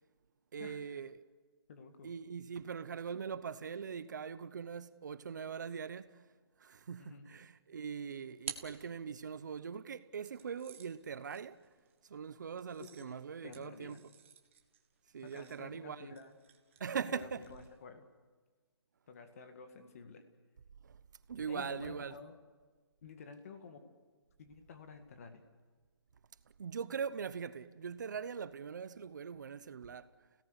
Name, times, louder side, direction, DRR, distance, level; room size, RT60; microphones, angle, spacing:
voice 1, 0.5-1.2 2.0-6.2 6.6-11.6 12.0-14.1 15.1-16.1 16.8-17.5 20.8-21.0 21.3-22.2 26.6-30.1, right 6 dB, 45° right, 0.8 m, -41 dB
voice 2, 1.7-2.1 7.0-7.3 12.8-14.0 15.2-16.4 16.8-18.1 19.1-20.2 21.5-22.3 23.0-23.8 24.4-25.4, left 5 dB, 35° left, 2.0 m, -51 dB
sound 1, 7.8-9.5 10.2-17.8, right 8 dB, 30° right, 1.5 m, -53 dB
29.5 x 17.5 x 8.2 m
hypercardioid pair, 170°, 14 cm